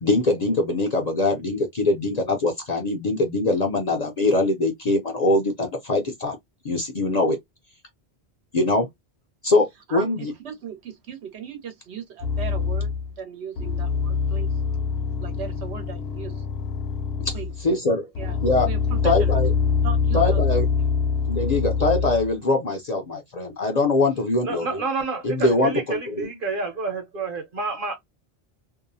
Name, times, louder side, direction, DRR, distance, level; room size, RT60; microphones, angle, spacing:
voice 1, 0.0-6.4 6.6-7.4 8.5-8.9 9.4-10.3 17.3-17.4 17.6-18.0 18.4-18.7 19.0-19.5 20.1-20.6 21.3-24.8 25.2-26.3, left 2 dB, 50° left, 0.6 m, -22 dB
voice 2, 10.4-14.6 15.2-16.5 17.3-17.5 17.9-19.3 19.8-20.6 21.1-21.2, right 7 dB, 80° right, 1.1 m, -38 dB
sound 1, 12.2-13.1 13.6-17.6 18.2-22.3, left 5 dB, 70° left, 0.8 m, -24 dB
voice 3, 24.4-27.9, right 4 dB, 55° right, 1.1 m, -29 dB
2.7 x 2.0 x 2.6 m
omnidirectional pair, 1.1 m